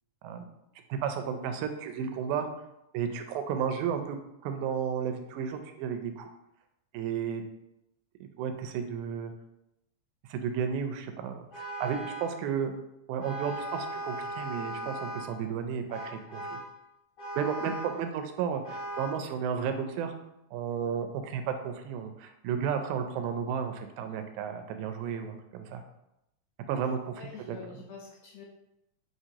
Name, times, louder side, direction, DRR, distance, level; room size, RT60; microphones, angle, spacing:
voice 1, 0.9-2.5 2.9-4.2 4.4-6.3 6.9-7.4 8.2-9.3 10.3-12.7 13.1-16.6 17.4-20.2 20.5-25.8 26.7-27.8, right 7 dB, 90° right, 7 dB, 2.0 m, -33 dB
Vehicle horn car horn honking, 11.5-12.4 13.2-15.4 15.9-16.7 17.2-18.0 18.6-19.2, right 1 dB, 45° left, 1.7 m, -38 dB
voice 2, 27.2-28.5, left 6 dB, 80° left, 0 dB, 1.5 m, -45 dB
6.0 x 2.9 x 2.8 m, 0.85 s
omnidirectional pair, 3.3 m